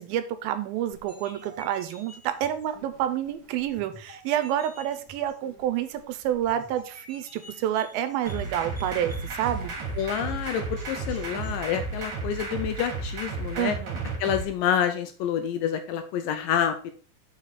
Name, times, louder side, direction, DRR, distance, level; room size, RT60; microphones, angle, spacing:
voice 1, 0.0-9.7 13.6-14.0, right 11 dB, 80° right, 10 dB, 2.3 m, -29 dB
sound 1, 0.9-11.6, right 1 dB, 5° right, 1.6 m, -50 dB
sound 2, 8.2-14.4, right 3 dB, 45° right, 2.0 m, -33 dB
voice 2, 10.0-13.8 14.2-16.9, left 9 dB, 80° left, 8 dB, 2.0 m, -28 dB
7.4 x 4.9 x 4.1 m, 0.41 s
omnidirectional pair, 4.4 m